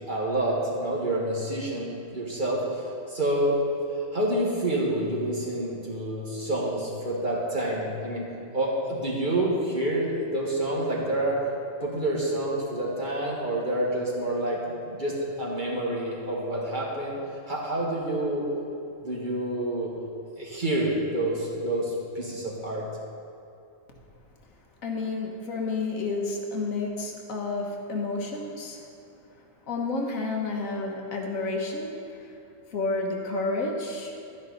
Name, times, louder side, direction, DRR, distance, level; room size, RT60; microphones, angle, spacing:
voice 1, 0.1-3.6 4.1-8.3 8.5-11.4 11.8-14.6 14.9-17.2 17.5-18.5 19.0-19.9 20.4-22.9, right 1 dB, 35° right, -4 dB, 1.8 m, -28 dB
voice 2, 24.8-28.9 29.7-32.3 32.7-34.1, left 3 dB, 85° left, 1 dB, 1.6 m, -30 dB
11.5 x 9.5 x 4.0 m, 2.6 s
omnidirectional pair, 1.4 m